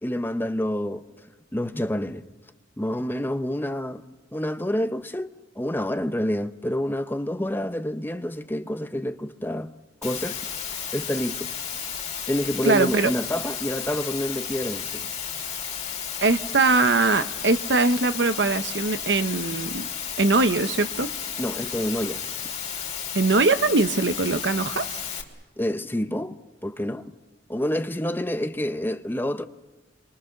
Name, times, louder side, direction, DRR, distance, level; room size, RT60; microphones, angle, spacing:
voice 1, 0.0-1.0 1.5-2.2 2.8-9.7 10.0-10.4 10.9-11.5 12.3-15.1 21.4-22.2 25.6-27.1 27.5-29.4, left 1 dB, 10° left, 0.7 m, -28 dB
Water, 10.0-25.2, left 8 dB, 40° left, 3.2 m, -33 dB
voice 2, 12.6-13.1 16.2-19.9 20.2-21.1 23.1-24.8, right 3 dB, 70° right, 1.0 m, -21 dB
30.0 x 23.0 x 6.6 m
head